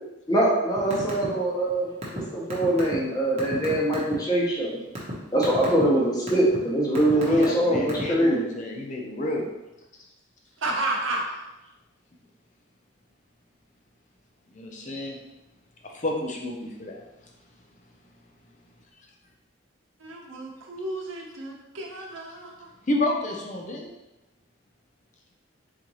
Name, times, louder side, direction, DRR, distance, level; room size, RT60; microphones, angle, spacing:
voice 1, 0.3-4.8 5.3-8.5, right 1 dB, 20° left, -4 dB, 0.9 m, -23 dB
sound 1, 0.8-1.3 1.5-4.1 4.7-5.1 5.4-5.8 6.3-6.6 6.9-8.2, right 1 dB, 30° right, 1.1 m, -34 dB
voice 2, 7.1-9.4 14.5-15.2 15.9-16.5 16.8-17.0 22.9-23.9, left 2 dB, 35° left, 0 dB, 0.6 m, -30 dB
voice 3, 10.6-11.4 20.0-22.7, right 2 dB, 75° right, -1 dB, 1.0 m, -32 dB
4.3 x 3.9 x 3.1 m, 0.96 s
head